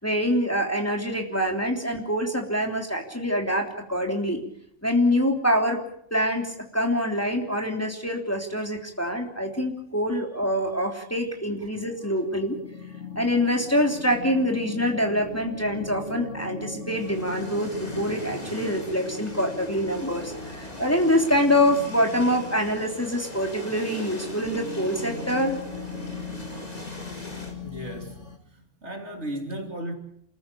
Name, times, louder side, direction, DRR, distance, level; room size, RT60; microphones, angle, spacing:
voice 1, 0.0-4.4 4.8-5.8 6.1-12.6 13.1-25.6, equal, 10° left, 3.3 m, -25 dB
sound 1, 11.9-28.4, left 3 dB, 75° left, 2.6 m, -39 dB
sound 2, 16.9-27.5, equal, 35° left, 4.6 m, -41 dB
voice 2, 27.6-29.9, right 1 dB, 65° right, 3.3 m, -36 dB
28.0 x 15.0 x 8.5 m
omnidirectional pair, 1.2 m